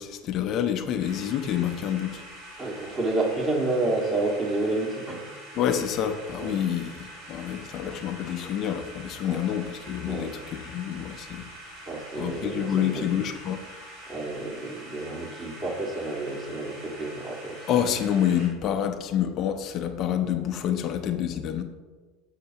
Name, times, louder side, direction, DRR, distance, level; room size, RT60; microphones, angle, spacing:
voice 1, 0.0-2.2 5.6-7.0 7.3-11.5 12.2-13.6 17.7-21.6, left 9 dB, 50° left, 5 dB, 0.6 m, -27 dB
sound 1, 1.0-18.5, right 1 dB, 75° right, 2.2 m, -45 dB
voice 2, 2.6-5.2 6.4-6.6 9.2-9.4 10.1-10.3 11.9-13.2 14.1-17.6, right 2 dB, 25° right, -2 dB, 1.9 m, -29 dB
7.4 x 6.5 x 2.9 m, 1.4 s
hypercardioid pair, 85°, 0 cm